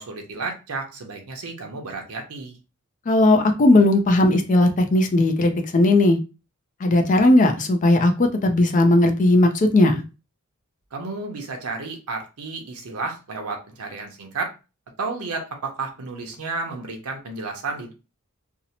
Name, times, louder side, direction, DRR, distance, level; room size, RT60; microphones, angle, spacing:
voice 1, 0.0-2.6 10.9-14.5 15.0-17.9, right 3 dB, 85° right, 3 dB, 0.7 m, -32 dB
voice 2, 3.1-6.2 6.8-10.0, left 2 dB, 35° left, 5 dB, 0.4 m, -17 dB
2.7 x 2.0 x 2.8 m, 0.29 s
head